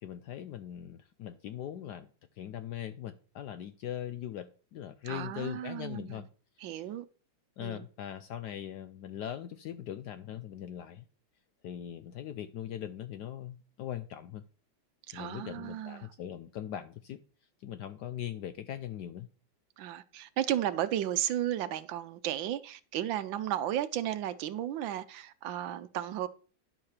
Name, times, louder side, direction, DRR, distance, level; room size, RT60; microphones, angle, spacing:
voice 1, 0.0-2.1 2.4-6.3 6.6-6.7 7.6-11.1 11.6-14.4 15.1-17.2 17.6-19.3, left 11 dB, 75° left, 1.0 m, -40 dB
voice 2, 5.0-6.2 6.6-7.0 7.6-7.9 15.1-16.1 19.8-26.3, right 11 dB, 75° right, 1.3 m, -34 dB
10.5 x 4.3 x 6.5 m
omnidirectional pair, 2.2 m